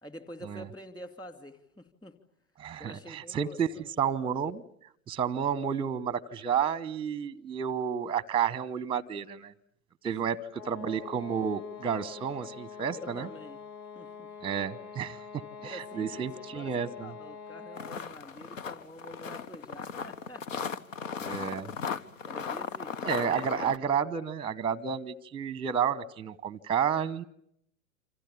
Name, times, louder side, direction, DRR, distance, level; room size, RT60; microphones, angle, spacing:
voice 1, 0.0-2.2 2.8-3.9 12.9-13.6 13.9-14.5 15.6-20.8 22.2-23.2, equal, 10° left, 8 dB, 2.6 m, -47 dB
voice 2, 2.6-4.6 5.1-9.5 10.0-13.3 14.4-15.2 15.6-17.1 21.2-21.7 23.0-27.2, right 7 dB, 10° right, 20 dB, 1.0 m, -31 dB
sound 1, 10.5-18.2, left 6 dB, 45° left, 4.7 m, -45 dB
sound 2, 17.8-23.8, left 6 dB, 65° left, 1.5 m, -37 dB
28.5 x 26.5 x 7.2 m, 0.71 s
figure-of-eight pair, 105°, 43 cm